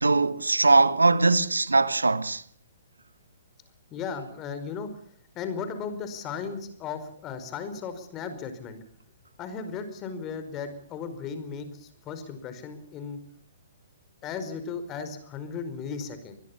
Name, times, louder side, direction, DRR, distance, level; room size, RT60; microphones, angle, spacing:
voice 1, 0.0-2.4, right 3 dB, 80° right, 1.2 m, -21 dB
voice 2, 3.9-4.9 5.3-8.8 9.4-13.2 14.2-16.4, left 6 dB, 25° left, 4.9 m, -36 dB
24.5 x 21.0 x 7.2 m
figure-of-eight pair, 120°, 0 cm